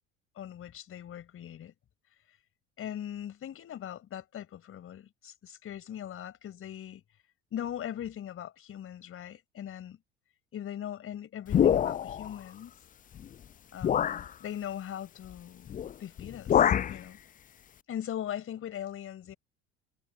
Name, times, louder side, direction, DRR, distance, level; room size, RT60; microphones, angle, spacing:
voice 1, 0.3-1.7 2.8-7.0 7.5-10.0 10.5-12.8 13.7-15.7 16.0-17.2 17.9-19.4, left 10 dB, 40° left, 5.1 m, -40 dB
sound 1, 11.5-12.3 13.2-13.3 13.8-14.3 15.7-15.9 16.2-17.0, left 9 dB, 25° left, 0.6 m, -25 dB
figure-of-eight pair, 60°, 33 cm